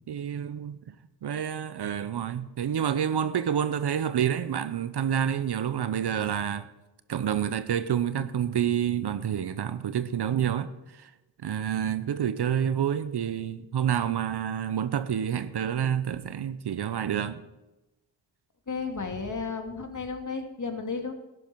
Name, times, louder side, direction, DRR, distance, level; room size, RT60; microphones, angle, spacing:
voice 1, 0.1-0.8 1.2-6.7 7.1-10.7 11.0-11.1 11.4-17.4, right 9 dB, 60° right, 0.9 m, -28 dB
voice 2, 18.7-21.1, left 4 dB, 40° left, 2.4 m, -33 dB
13.0 x 11.0 x 4.7 m
cardioid pair, 50°, 45 cm